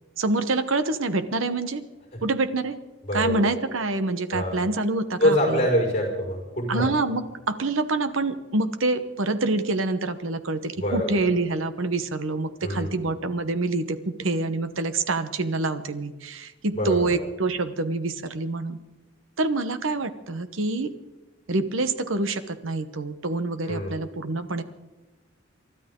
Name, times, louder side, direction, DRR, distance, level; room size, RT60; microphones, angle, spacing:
voice 1, 0.2-1.8 2.2-2.8 3.1-5.6 6.7-18.8 19.4-20.9 21.5-24.6, right 2 dB, 75° right, 10 dB, 1.1 m, -26 dB
voice 2, 3.0-3.5 4.3-4.7 5.2-6.9 10.8-11.3 12.6-13.1 16.8-17.1 23.7-24.0, equal, 30° left, 0 dB, 5.4 m, -25 dB
29.0 x 13.0 x 3.8 m, 1.2 s
head